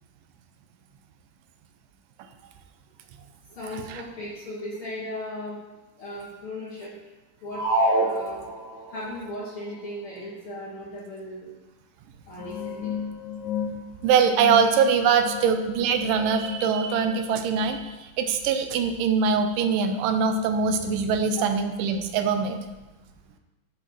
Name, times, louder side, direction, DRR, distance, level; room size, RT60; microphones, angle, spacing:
voice 1, 3.6-5.6 6.0-6.9 7.4-7.6 8.0-8.5 8.9-11.5 12.3-12.9 21.4-21.5, left 1 dB, 50° left, -8 dB, 2.0 m, -36 dB
sound 1, 7.5-9.0, right 1 dB, 70° right, 3.0 m, -25 dB
sound 2, 12.4-17.7, left 7 dB, 80° left, 1.7 m, -35 dB
voice 2, 14.0-22.6, right 6 dB, 90° right, 7 dB, 2.3 m, -23 dB
11.0 x 3.9 x 4.6 m, 1.1 s
omnidirectional pair, 3.7 m